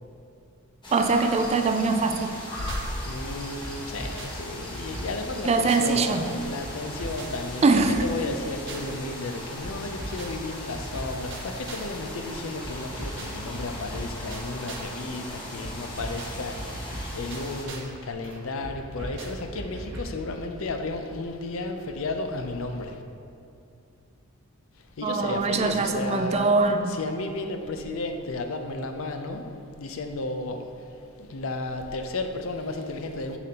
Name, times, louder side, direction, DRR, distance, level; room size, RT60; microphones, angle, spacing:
sound 1, 0.8-17.6, left 1 dB, 25° left, 1.2 m, -39 dB
voice 1, 0.9-2.4 5.5-6.3 7.6-8.0 25.0-26.9, right 4 dB, 30° right, 6 dB, 0.4 m, -22 dB
sound 2, 2.1-3.0 3.2-6.0 6.2-9.0 9.2-12.0 12.2-15.0 15.2-18.0 18.2-20.2, right 1 dB, 60° right, 0.9 m, -39 dB
voice 2, 2.6-23.0 24.8-26.5 26.9-29.5 29.8-33.4, left 2 dB, 70° left, 6 dB, 0.5 m, -33 dB
6.9 x 6.7 x 2.9 m, 2.5 s
head